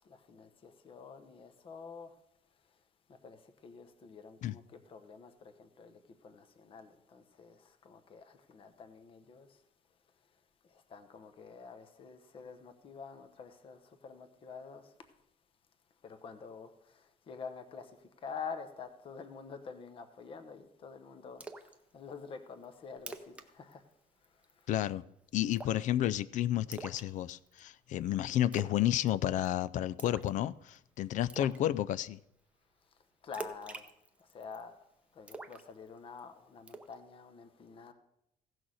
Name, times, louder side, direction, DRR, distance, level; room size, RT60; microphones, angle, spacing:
voice 1, 0.0-2.1 3.1-9.6 10.7-14.9 16.0-23.8 24.3-24.8 33.2-33.9 34.2-34.8 35.1-37.9, left 5 dB, 35° left, 0.9 m, -48 dB
Splash splatter, 21.4-21.7 22.1-22.2 22.6-22.7 23.0-23.5 23.7-23.9 24.2-24.6 25.5-25.9 26.7-27.6 28.5-28.8 29.1-29.5 30.0-30.4 30.7-30.8 31.3-31.6 33.3-34.6 35.3-36.2 36.7-36.9, right 3 dB, 10° right, 0.7 m, -45 dB
voice 2, 24.7-25.0 25.3-32.2, left 12 dB, 55° left, 0.4 m, -31 dB
15.5 x 6.2 x 6.3 m
cardioid pair, 155°, 15 cm